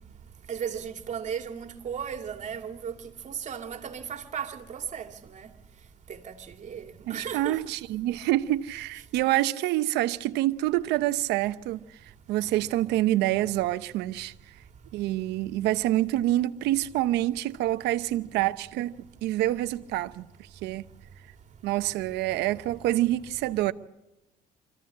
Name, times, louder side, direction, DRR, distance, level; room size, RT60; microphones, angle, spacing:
voice 1, 0.5-3.0 3.2-5.5 6.1-7.6, right 7 dB, 45° right, 2.5 m, -36 dB
voice 2, 7.1-11.8 12.3-14.3 14.9-18.9 19.2-20.3 20.6-20.9 21.6-23.7, right 15 dB, 90° right, 0.9 m, -26 dB
25.0 x 15.0 x 8.5 m
cardioid pair, 110°, 17 cm